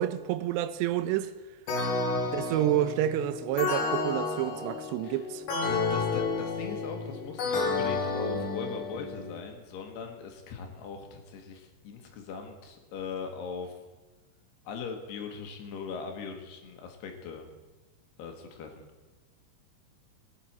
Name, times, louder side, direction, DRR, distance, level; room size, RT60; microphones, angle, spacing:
voice 1, 0.0-1.3 2.3-5.5, right 12 dB, 90° right, 2.9 m, -29 dB
sound 1, 1.7-9.3, left 3 dB, 60° left, 3.0 m, -31 dB
voice 2, 5.7-13.8 14.7-17.5 18.2-18.9, left 5 dB, 75° left, 3.4 m, -40 dB
20.0 x 9.2 x 4.4 m
omnidirectional pair, 4.9 m